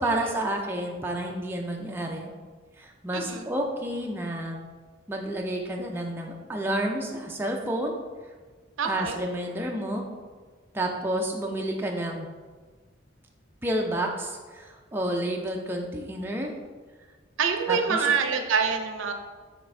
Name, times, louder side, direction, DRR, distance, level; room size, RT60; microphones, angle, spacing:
voice 1, 0.0-2.3 2.8-4.6 5.1-8.0 8.8-10.0 10.7-12.3 13.6-16.5 17.7-18.1, right 1 dB, 10° right, 0 dB, 0.3 m, -30 dB
voice 2, 3.1-3.5 8.8-9.2 17.4-19.1, right 6 dB, 80° right, 5 dB, 0.5 m, -26 dB
6.0 x 3.2 x 2.6 m, 1.4 s
head